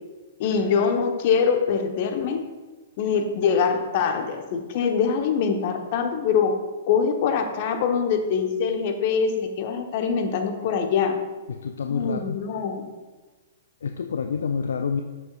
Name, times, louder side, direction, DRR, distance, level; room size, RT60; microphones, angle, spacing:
voice 1, 0.4-2.4 3.0-6.6 6.9-11.2 11.9-12.9, left 6 dB, 45° left, 6 dB, 0.9 m, -23 dB
voice 2, 11.6-12.4 13.8-15.0, left 6 dB, 65° left, 6 dB, 0.4 m, -27 dB
11.0 x 7.3 x 2.4 m, 1.3 s
figure-of-eight pair, 110°, 0 cm